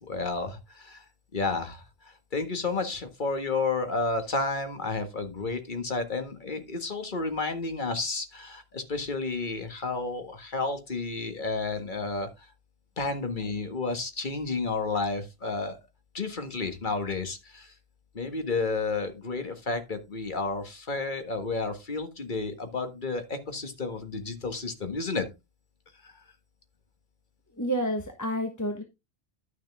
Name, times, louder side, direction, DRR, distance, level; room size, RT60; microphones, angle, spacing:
voice 1, 0.1-1.0 1.3-12.5 13.0-15.8 16.1-17.7 18.1-25.3 26.0-26.2, left 3 dB, 50° left, 7 dB, 1.8 m, -31 dB
voice 2, 27.6-28.8, equal, 15° left, 4 dB, 1.3 m, -29 dB
11.5 x 6.6 x 3.6 m, 0.24 s
omnidirectional pair, 1.1 m